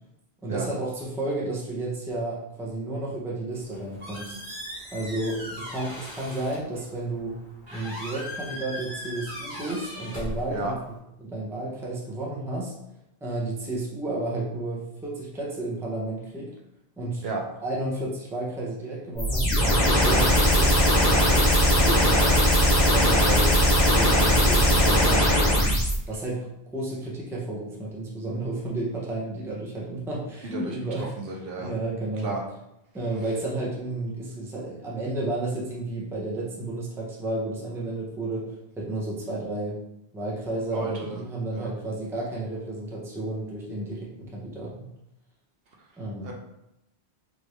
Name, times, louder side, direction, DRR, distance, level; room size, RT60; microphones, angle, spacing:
voice 1, 0.4-4.4 4.9-7.4 7.7-10.8 11.2-12.7 13.2-16.5 17.0-17.2 17.6-22.4 22.8-23.5 23.8-25.7 26.1-31.1 31.6-32.3 32.9-39.8 40.1-44.7 46.0-46.3, right 2 dB, 5° right, -5 dB, 0.6 m, -32 dB
Squeak, 3.5-11.0, left 1 dB, 50° right, 1.2 m, -39 dB
sound 1, 19.2-26.0, equal, 45° left, 1.1 m, -19 dB
voice 2, 30.4-31.7 32.2-32.4 40.7-41.2 41.5-41.7 46.2-46.3, right 3 dB, 70° right, 0 dB, 0.9 m, -33 dB
3.4 x 2.6 x 3.1 m, 0.85 s
omnidirectional pair, 1.1 m